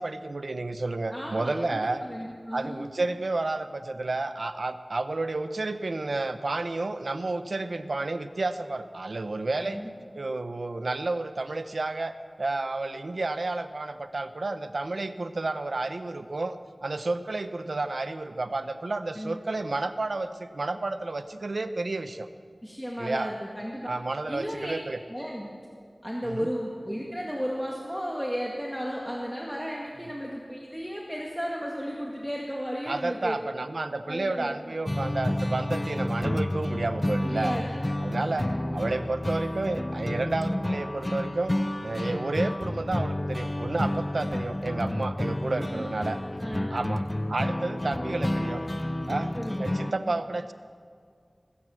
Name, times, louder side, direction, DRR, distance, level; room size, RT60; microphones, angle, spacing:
voice 1, 0.0-2.1 2.5-9.8 10.1-22.3 23.0-23.3 23.9-25.0 26.2-26.4 32.9-37.5 38.0-41.6 41.8-46.2 46.7-48.6 49.1-50.5, right 2 dB, 80° right, 10 dB, 0.7 m, -31 dB
voice 2, 1.1-2.9 9.5-9.9 19.2-19.4 22.6-23.9 24.3-24.8 25.1-25.5 26.0-33.4 34.1-34.5 37.2-37.8 38.2-38.6 45.4-45.9 46.4-47.4 49.3-50.1, equal, ahead, -2 dB, 1.9 m, -34 dB
sound 1, 34.9-49.9, left 1 dB, 30° left, 0.3 m, -30 dB
18.5 x 9.6 x 7.6 m, 2.1 s
wide cardioid pair, 55°, 0 cm